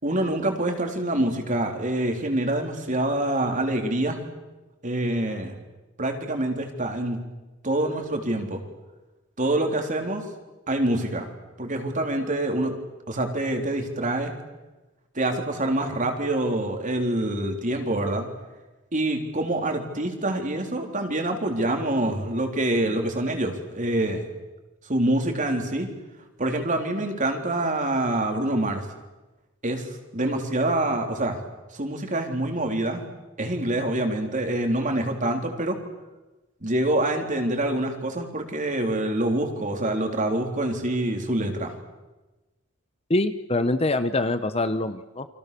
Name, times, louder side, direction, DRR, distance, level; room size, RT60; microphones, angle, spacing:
voice 1, 0.0-4.2 4.8-5.6 6.0-7.2 7.6-8.6 9.4-10.3 10.7-11.3 11.6-12.7 13.1-14.3 15.2-18.3 18.9-24.2 24.9-25.9 26.4-28.9 29.6-29.9 30.1-31.4 31.7-33.0 33.4-35.8 36.6-41.7, right 1 dB, 35° right, 4 dB, 3.7 m, -26 dB
voice 2, 43.1-45.3, left 2 dB, 30° left, 11 dB, 1.0 m, -24 dB
29.5 x 25.0 x 6.9 m, 1.1 s
head